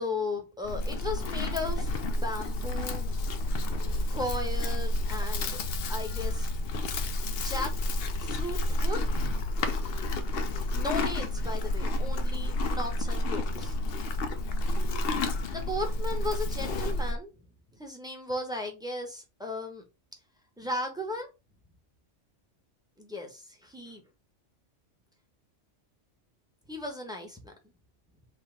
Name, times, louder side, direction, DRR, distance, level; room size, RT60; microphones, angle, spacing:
voice 1, 0.0-3.2 4.1-5.6 5.9-6.5 7.3-7.7 8.2-9.0 10.7-13.7 15.5-17.3 17.8-19.8 20.6-21.3 23.0-24.0 26.7-27.5, left 2 dB, 5° right, 1.0 m, -36 dB
Livestock farm animals working animals, 0.6-17.2, left 1 dB, 55° left, 0.8 m, -30 dB
3.9 x 3.0 x 4.6 m
omnidirectional pair, 1.3 m